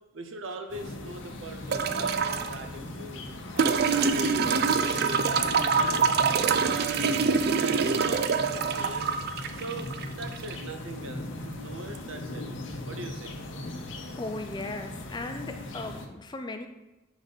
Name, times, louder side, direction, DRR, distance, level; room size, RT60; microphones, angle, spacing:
voice 1, 0.1-3.2 3.5-6.1 6.4-9.1 9.5-12.4 12.9-13.4, right 2 dB, 75° right, 5 dB, 0.8 m, -40 dB
sound 1, 0.7-16.1, left 1 dB, 70° left, 0.7 m, -39 dB
sound 2, 1.7-2.5 3.6-10.6 11.9-12.0, right 5 dB, 50° right, 0.3 m, -25 dB
voice 2, 14.2-16.7, left 2 dB, 20° left, 5 dB, 0.4 m, -37 dB
5.1 x 4.1 x 5.0 m, 1.0 s
head